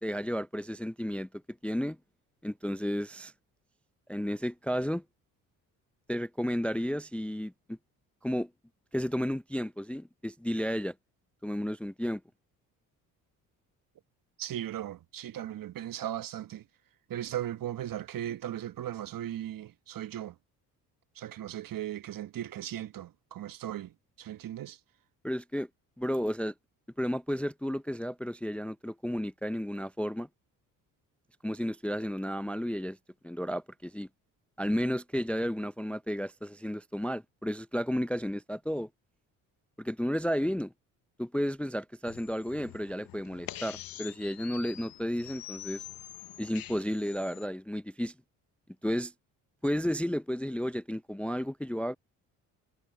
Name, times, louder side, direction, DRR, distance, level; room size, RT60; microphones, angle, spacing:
voice 1, 0.0-1.3 1.6-2.0 2.4-3.3 4.1-5.0 6.1-7.8 8.2-8.5 8.9-10.9 11.4-12.2 25.2-25.7 26.0-26.5 27.0-30.3 31.4-33.0 33.2-34.1 34.6-38.9 39.8-40.7 41.2-45.8 46.4-48.1 48.8-49.1 49.6-52.0, equal, 5° left, 0.5 m, -32 dB
voice 2, 14.4-16.6 17.1-20.4 21.1-24.8, right 12 dB, 55° right, 1.2 m, -37 dB
sound 1, 42.1-47.5, left 13 dB, 55° left, 1.1 m, -46 dB
hypercardioid pair, 60°, 41 cm